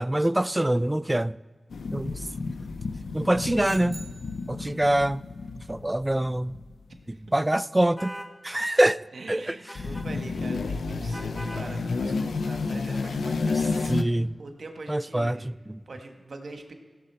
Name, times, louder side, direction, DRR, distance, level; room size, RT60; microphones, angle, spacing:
voice 1, 0.0-1.4 1.9-2.2 3.1-4.0 4.5-5.2 5.7-6.6 7.3-8.1 8.4-9.0 9.3-9.6 13.9-14.3 14.9-15.8, right 1 dB, 20° right, 0.3 m, -24 dB
sound 1, 1.7-6.7 9.7-14.0, left 4 dB, 85° left, 0.5 m, -31 dB
sound 2, 3.6-5.1, right 3 dB, 50° right, 1.2 m, -48 dB
sound 3, 8.0-8.3 9.7-10.1 11.1-11.7, equal, 5° right, 1.6 m, -39 dB
voice 2, 9.1-15.5 15.9-16.7, right 3 dB, 70° right, 1.3 m, -43 dB
16.0 x 6.5 x 4.3 m
cardioid pair, 50°, 0 cm